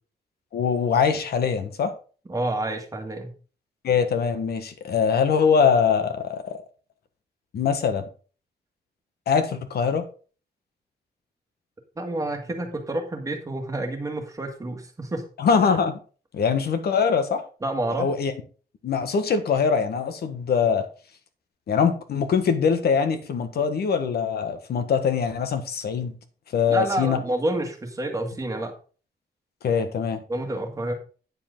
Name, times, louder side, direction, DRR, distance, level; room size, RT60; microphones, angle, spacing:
voice 1, 0.5-1.9 3.8-6.6 7.5-8.0 9.3-10.0 15.4-16.0 16.3-17.4 18.0-18.3 18.8-20.8 21.7-26.1 26.5-27.2 29.6-30.2, left 6 dB, 70° left, 9 dB, 1.4 m, -23 dB
voice 2, 2.3-3.3 12.0-15.2 17.6-18.1 26.7-28.7 30.3-30.9, right 1 dB, 20° right, 4 dB, 1.6 m, -28 dB
9.6 x 7.3 x 3.8 m, 0.38 s
wide cardioid pair, 175°, 17 cm